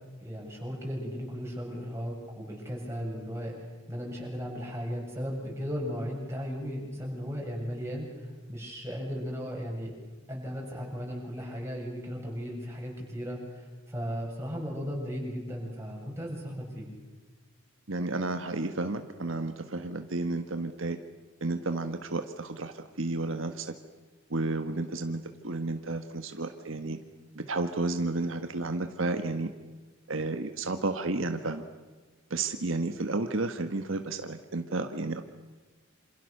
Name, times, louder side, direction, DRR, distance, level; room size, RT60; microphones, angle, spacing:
voice 1, 0.2-3.6 3.9-9.9 10.3-16.9, equal, 15° right, -2 dB, 7.4 m, -36 dB
voice 2, 17.9-21.0 21.4-23.7 24.3-27.0 27.3-29.5 30.1-31.7 32.3-35.2, right 2 dB, 75° right, 7 dB, 1.4 m, -32 dB
27.5 x 27.5 x 6.7 m, 1.3 s
head